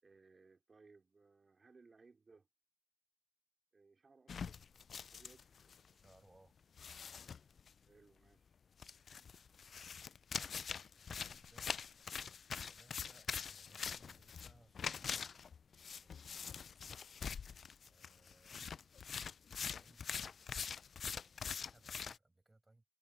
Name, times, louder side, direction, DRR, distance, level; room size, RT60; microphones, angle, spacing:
voice 1, 0.0-2.5 3.7-4.6 4.9-5.4 7.9-8.6, right 4 dB, 30° right, 3.4 m, -65 dB
sound 1, 4.3-5.9 6.1-6.2 6.8-7.7 8.8-22.2, left 6 dB, 45° left, 0.3 m, -44 dB
voice 2, 5.9-6.6 9.9-10.6 11.0-12.3 12.6-15.5 15.9-16.6 17.8-19.0 19.6-20.5 21.2-22.8, right 2 dB, 15° right, 7.1 m, -68 dB
cardioid pair, 90°, 0 cm